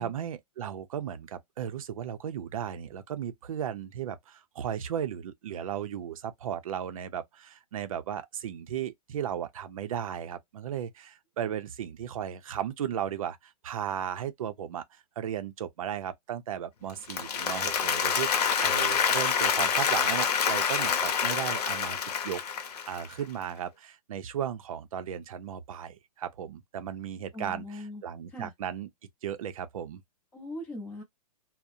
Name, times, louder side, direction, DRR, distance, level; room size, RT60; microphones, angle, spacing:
voice 1, 0.0-22.4 22.9-27.6 28.0-28.9 29.2-30.0, right 9 dB, 60° right, 0.6 m, -35 dB
Applause, 16.9-23.1, left 7 dB, 75° left, 0.8 m, -27 dB
voice 2, 27.3-28.0 28.3-28.5 30.3-31.0, left 1 dB, 10° left, 0.7 m, -40 dB
2.7 x 2.1 x 2.3 m
hypercardioid pair, 170°, 20 cm